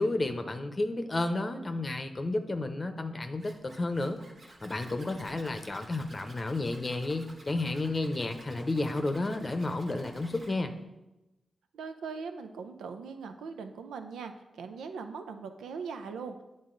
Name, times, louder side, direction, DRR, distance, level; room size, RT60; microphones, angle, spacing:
voice 1, 0.0-4.2 4.6-10.7, left 2 dB, 40° left, 7 dB, 0.7 m, -31 dB
Zipper (clothing), 3.4-10.5, right 2 dB, 65° right, 1.3 m, -53 dB
voice 2, 11.7-16.4, right 5 dB, 90° right, 7 dB, 0.5 m, -40 dB
8.8 x 3.9 x 3.8 m, 0.99 s
supercardioid pair, 45°, 0 cm